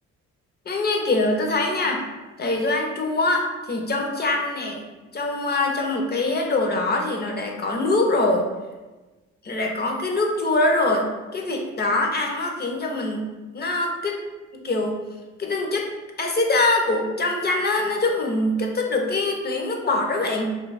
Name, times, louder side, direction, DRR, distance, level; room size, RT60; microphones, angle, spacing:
voice 1, 0.7-2.0 2.4-4.8 5.1-8.5 9.4-13.3 13.5-14.2 14.5-15.0 15.4-15.9 16.2-20.5, left 2 dB, 35° left, 1 dB, 0.6 m, -23 dB
2.7 x 2.3 x 3.9 m, 1.2 s
cardioid pair, 90°, 30 cm